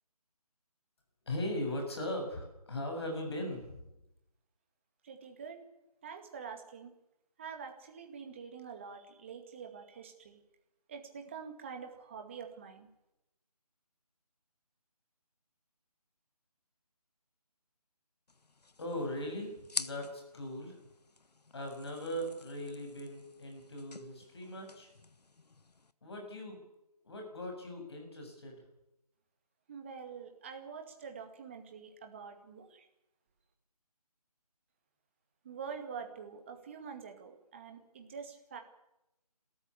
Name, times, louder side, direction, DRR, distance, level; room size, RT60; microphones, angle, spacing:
voice 1, 1.3-3.8 18.8-20.8 21.5-24.9 26.0-26.6 27.0-28.6, left 1 dB, 40° left, 2 dB, 7.2 m, -39 dB
voice 2, 5.0-5.6 6.0-6.9 7.4-10.4 10.9-12.9 29.7-32.9 35.4-38.6, right 6 dB, 20° right, 4 dB, 2.1 m, -46 dB
sound 1, 18.3-25.9, left 3 dB, 90° left, 1.3 m, -47 dB
29.0 x 13.5 x 8.5 m, 0.89 s
figure-of-eight pair, 170°, 20 cm